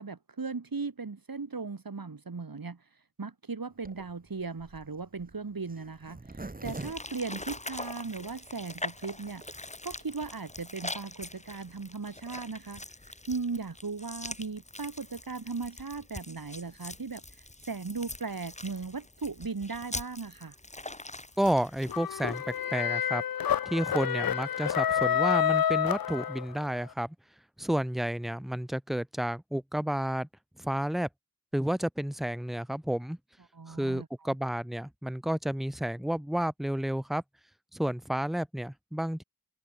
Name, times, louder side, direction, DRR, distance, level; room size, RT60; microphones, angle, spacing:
voice 1, 0.0-2.8 3.2-9.4 9.8-12.8 13.3-17.2 17.7-20.5 33.5-34.1, right 4 dB, 70° right, 1.7 m, -37 dB
Zipper (clothing), 3.8-8.1 8.6-8.7 8.9-9.0 9.2-9.5, right 2 dB, 25° right, 0.9 m, -44 dB
sound 1, 6.6-22.6, left 2 dB, 20° left, 1.2 m, -43 dB
voice 2, 21.4-23.2 23.7-27.2 27.6-30.3 30.6-31.1 31.5-33.2 33.7-37.2 37.7-39.2, right 1 dB, ahead, 0.4 m, -31 dB
sound 2, 21.9-26.7, left 9 dB, 70° left, 0.5 m, -28 dB
wide cardioid pair, 40°, 36 cm